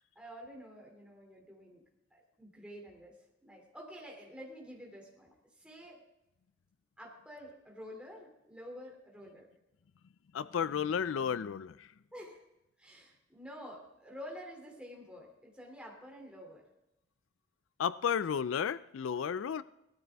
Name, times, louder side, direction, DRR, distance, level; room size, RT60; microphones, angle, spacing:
voice 1, 0.1-1.8 2.1-3.1 3.4-6.0 7.0-9.5 12.1-12.4 12.8-16.6, equal, 5° right, -1 dB, 2.7 m, -49 dB
voice 2, 10.3-11.9 17.8-19.6, left 7 dB, 90° left, 16 dB, 0.4 m, -33 dB
17.5 x 13.5 x 3.5 m, 0.89 s
head